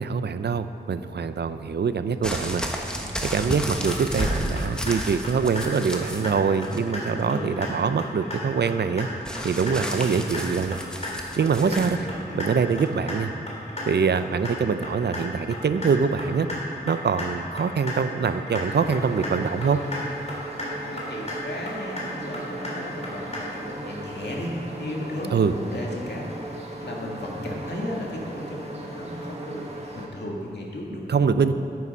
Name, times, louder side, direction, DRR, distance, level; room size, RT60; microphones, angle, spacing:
voice 1, 0.0-2.6 3.2-9.1 9.4-10.8 11.4-12.0 12.3-13.3 13.9-16.5 16.9-19.8 25.3-25.5 31.1-31.5, right 5 dB, 70° right, 11 dB, 0.5 m, -24 dB
sound 1, 2.2-6.3 6.6-7.2 9.3-11.9 12.8-12.9, equal, 5° left, 1.2 m, -32 dB
sound 2, 3.9-4.3 4.6-5.0 5.2-5.6 5.9-6.3 6.6-7.0 7.3-7.7 8.0-8.4 8.7-9.0 9.3-9.7 10.0-10.4 10.7-11.1 11.4-11.8 12.1-12.5 12.8-13.2 13.5-13.8 14.1-14.5 14.8-15.2 15.5-15.9 16.2-16.6 16.9-17.3 17.6-17.9 18.2-18.6 18.9-19.3 19.6-20.0 20.3-20.7 21.0-21.3 21.7-22.1 22.3-22.7 23.0-23.4, left 2 dB, 40° left, 3.3 m, -34 dB
voice 2, 7.1-7.5 9.8-10.0 11.6-12.1 20.8-29.6 29.9-31.4, left 1 dB, 75° left, -2 dB, 2.0 m, -35 dB
sound 3, 18.7-30.1, right 2 dB, 35° right, 1.7 m, -38 dB
11.0 x 9.4 x 5.6 m, 2.6 s
wide cardioid pair, 100°, 18 cm